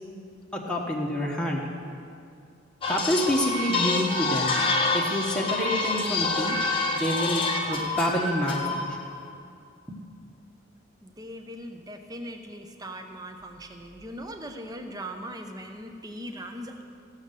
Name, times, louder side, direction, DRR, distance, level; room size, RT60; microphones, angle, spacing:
voice 1, 0.5-1.6 2.9-4.5 4.9-6.6 6.9-8.8 9.9-10.0, equal, 5° left, -3 dB, 1.1 m, -27 dB
sound 1, 2.8-9.1, left 3 dB, 25° left, 1.1 m, -27 dB
voice 2, 11.0-16.8, equal, 20° right, 5 dB, 0.7 m, -40 dB
16.0 x 6.5 x 6.7 m, 2.4 s
head